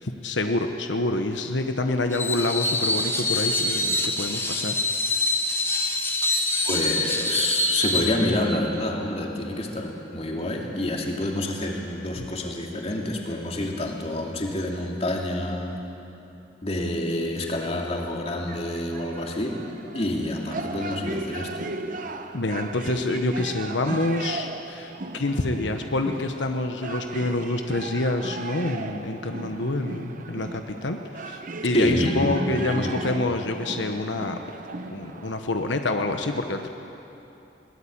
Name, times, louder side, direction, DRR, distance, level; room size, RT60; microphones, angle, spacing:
voice 1, 0.0-4.7 22.3-34.3 34.9-36.7, left 2 dB, 90° left, 5 dB, 1.2 m, -27 dB
Screech, 2.1-8.2, left 2 dB, 15° left, 1.5 m, -25 dB
voice 2, 6.6-15.8 16.6-19.6 19.9-21.5 31.7-33.3, left 1 dB, 35° left, 0 dB, 2.7 m, -28 dB
sound 1, 18.5-35.4, right 2 dB, 45° right, 1.0 m, -36 dB
21.5 x 18.5 x 8.8 m, 3.0 s
head